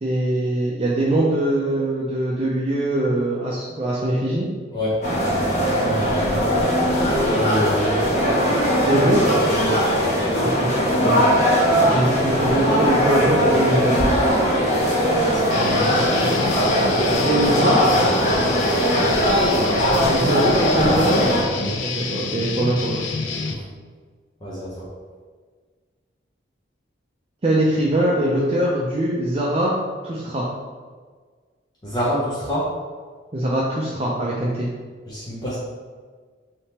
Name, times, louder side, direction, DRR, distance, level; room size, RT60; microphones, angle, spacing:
voice 1, 0.0-4.5 8.9-9.2 10.4-10.7 11.0-11.3 11.8-14.0 17.2-17.8 20.1-21.2 21.9-23.0 27.4-29.8 30.0-30.5 33.3-34.7, right 1 dB, 30° right, -4 dB, 0.4 m, -22 dB
voice 2, 4.7-5.0 5.6-6.7 7.2-8.0 9.5-9.8 15.2-16.0 18.0-19.0 20.9-21.0 21.6-21.8 23.3-23.6 24.4-24.9 31.8-32.7 35.1-35.6, equal, 20° left, -9 dB, 0.7 m, -28 dB
sound 1, 5.0-21.4, equal, 40° left, 1.2 m, -19 dB
Guitar, 15.5-23.5, left 4 dB, 80° left, 0.5 m, -28 dB
3.5 x 2.8 x 4.2 m, 1.5 s
head